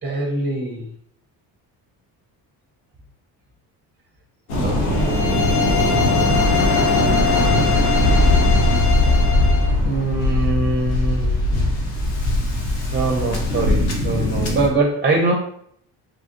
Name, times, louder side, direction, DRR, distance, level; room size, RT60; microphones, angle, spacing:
voice 1, 0.0-0.9 4.6-6.4 9.8-11.4 12.9-15.3, right 2 dB, 20° right, 1 dB, 0.6 m, -23 dB
Waves surf, 4.5-14.7, left 1 dB, 80° left, 1.0 m, -19 dB
sound 1, 4.9-9.7, left 8 dB, 30° left, 0.4 m, -23 dB
3.3 x 2.4 x 2.6 m, 0.66 s
hypercardioid pair, 55°, 50 cm